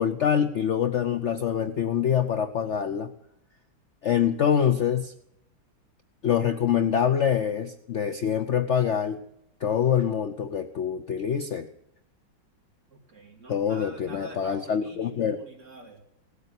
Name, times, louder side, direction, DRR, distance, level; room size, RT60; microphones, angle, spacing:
voice 1, 0.0-3.1 4.0-5.1 6.2-9.2 9.6-11.7 13.5-15.4, left 8 dB, 75° left, 10 dB, 0.6 m, -25 dB
voice 2, 12.9-16.0, right 2 dB, 35° right, 0 dB, 3.3 m, -45 dB
17.5 x 8.4 x 9.6 m, 0.78 s
omnidirectional pair, 2.2 m